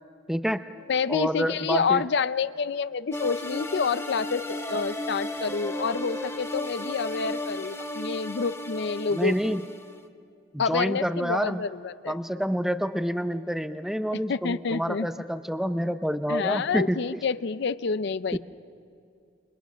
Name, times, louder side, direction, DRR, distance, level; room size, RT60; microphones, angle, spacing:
voice 1, 0.3-0.6 1.1-2.0 9.1-9.6 10.5-11.6 12.1-17.0 18.3-18.4, equal, ahead, 10 dB, 0.6 m, -28 dB
voice 2, 0.9-9.5 10.6-12.2 14.1-15.1 16.3-18.4, left 5 dB, 60° left, 15 dB, 0.5 m, -28 dB
sound 1, 3.1-10.0, left 1 dB, 15° left, 1.2 m, -34 dB
28.5 x 25.5 x 6.2 m, 2.5 s
head